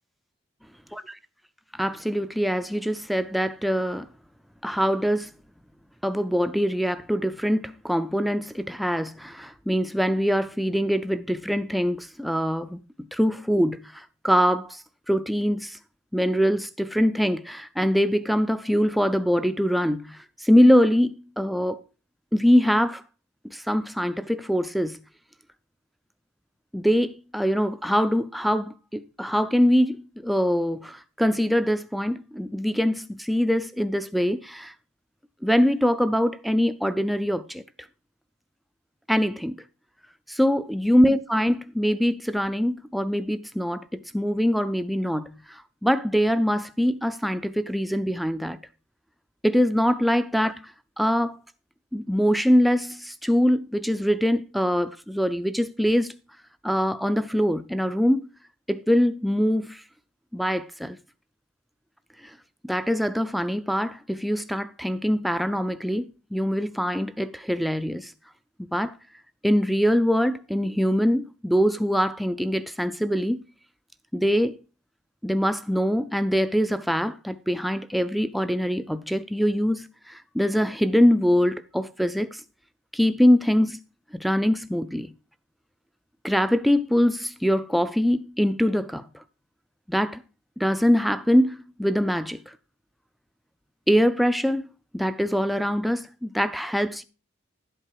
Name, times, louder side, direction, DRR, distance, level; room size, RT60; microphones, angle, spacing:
voice 1, 1.7-4.1 4.6-5.3 6.0-12.8 13.1-14.8 15.1-15.8 16.1-21.8 22.3-23.0 23.4-25.0 26.7-34.7 35.4-37.6 39.1-39.6 40.3-48.6 49.4-50.7 51.0-51.4 51.9-56.1 56.6-58.2 58.7-59.8 60.3-61.0 62.6-68.1 68.6-68.9 69.4-73.4 74.1-74.6 75.2-82.4 82.9-83.8 84.1-85.1 86.2-89.2 89.9-90.2 90.6-92.5 93.9-94.7 94.9-97.0, equal, ahead, 0.4 m, -23 dB
12.0 x 7.8 x 4.7 m
head